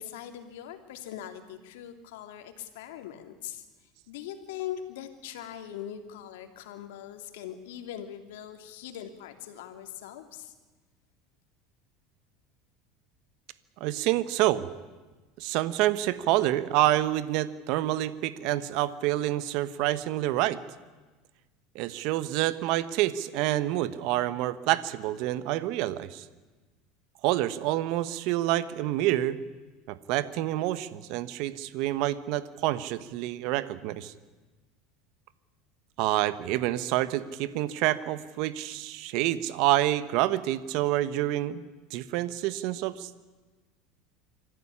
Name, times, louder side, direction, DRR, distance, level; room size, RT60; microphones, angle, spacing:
voice 1, 0.0-3.6 4.1-10.5, left 10 dB, 85° left, 7 dB, 2.6 m, -41 dB
voice 2, 13.8-14.7 15.4-20.6 21.7-26.2 27.2-29.4 29.9-34.1 36.0-41.6 41.9-43.1, right 14 dB, 60° right, 14 dB, 1.1 m, -27 dB
26.0 x 14.5 x 10.0 m, 1.3 s
supercardioid pair, 130°, 0 cm